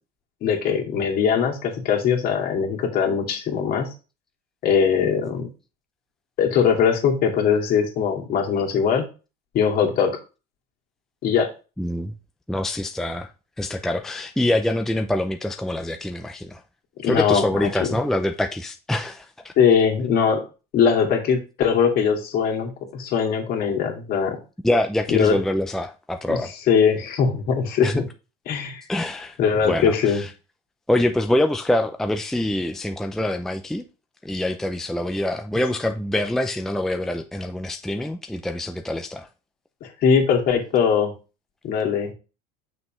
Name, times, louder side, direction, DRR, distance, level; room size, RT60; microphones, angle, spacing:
voice 1, 0.4-3.9 4.6-5.5 6.4-9.1 9.5-10.2 11.2-11.5 17.0-17.7 19.6-20.4 20.7-24.4 25.1-25.4 26.3-26.4 26.7-28.0 28.5-28.8 29.4-30.2 39.8-41.1 41.6-42.1, left 7 dB, 50° left, 2.2 m, -21 dB
voice 2, 11.8-12.1 12.5-13.3 13.6-16.6 17.0-19.5 24.6-26.5 27.8-28.0 28.9-29.4 29.7-30.3 30.9-33.8 34.2-39.3, left 1 dB, ahead, 0.5 m, -25 dB
7.1 x 6.3 x 3.1 m
supercardioid pair, 110°, 19 cm